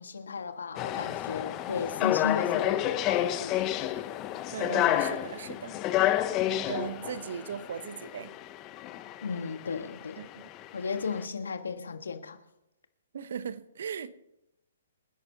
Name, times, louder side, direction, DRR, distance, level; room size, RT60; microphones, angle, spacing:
voice 1, 0.0-3.7 9.2-10.2 10.7-12.4, left 5 dB, 75° left, 1.6 m, -35 dB
sound 1, 0.8-11.2, left 13 dB, 30° left, 1.0 m, -30 dB
voice 2, 4.5-5.8 6.5-8.3 10.2-10.5 13.1-14.1, right 7 dB, 65° right, 0.9 m, -38 dB
28.0 x 11.0 x 3.0 m
figure-of-eight pair, 125°, 0 cm